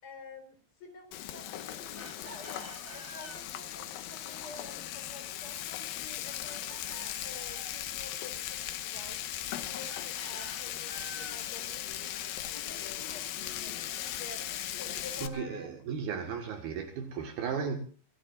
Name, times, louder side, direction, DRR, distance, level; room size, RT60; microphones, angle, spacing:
voice 1, 0.0-2.6 2.9-9.2 9.6-15.7, left 3 dB, 30° left, 5.0 m, -50 dB
Frying (food), 1.1-15.3, left 12 dB, 75° left, 2.2 m, -38 dB
Chicken rooster, 1.9-3.5 6.4-7.8 9.9-11.5 13.4-15.0, right 1 dB, 15° right, 4.4 m, -50 dB
voice 2, 15.2-17.8, right 6 dB, 65° right, 3.3 m, -35 dB
25.5 x 18.0 x 2.6 m
omnidirectional pair, 5.3 m